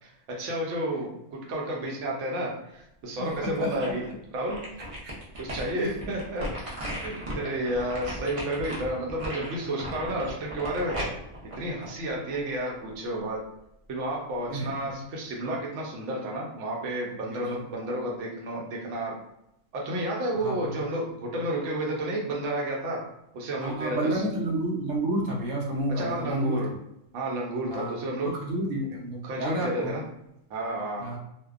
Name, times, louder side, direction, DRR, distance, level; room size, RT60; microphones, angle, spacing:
voice 1, 0.4-4.0 4.3-4.6 5.4-6.4 6.9-11.1 11.6-13.4 13.9-19.1 19.7-23.0 23.3-24.2 26.0-26.7 27.1-28.3 29.2-30.0 30.5-31.1, right 1 dB, 65° right, -2 dB, 0.9 m, -31 dB
sound 1, 3.3-4.1 4.5-12.6 13.0-13.1, equal, 45° right, 0.4 m, -37 dB
voice 2, 3.6-3.9 5.0-5.1 5.8-5.9 8.6-8.7 14.5-14.9 17.2-17.4 20.4-20.7 23.6-26.6 27.7-27.9 28.2-30.0 31.0-31.2, right 1 dB, 90° right, -1 dB, 1.1 m, -30 dB
2.6 x 2.1 x 2.3 m, 0.82 s
omnidirectional pair, 1.4 m